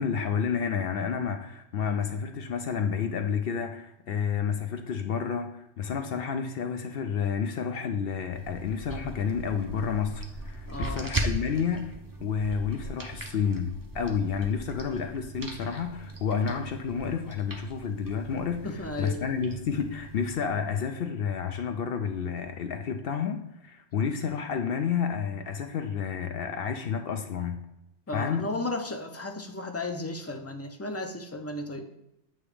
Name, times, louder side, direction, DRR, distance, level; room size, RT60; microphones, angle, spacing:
voice 1, 0.0-11.9 12.2-18.7 19.0-27.6 28.1-28.5, left 6 dB, 65° left, 6 dB, 0.7 m, -30 dB
sound 1, 8.3-20.5, right 2 dB, 20° right, 0.7 m, -38 dB
voice 2, 10.7-11.0 18.6-19.2 28.1-31.9, left 2 dB, 20° left, 4 dB, 0.5 m, -34 dB
8.7 x 2.9 x 4.9 m, 0.84 s
omnidirectional pair, 1.1 m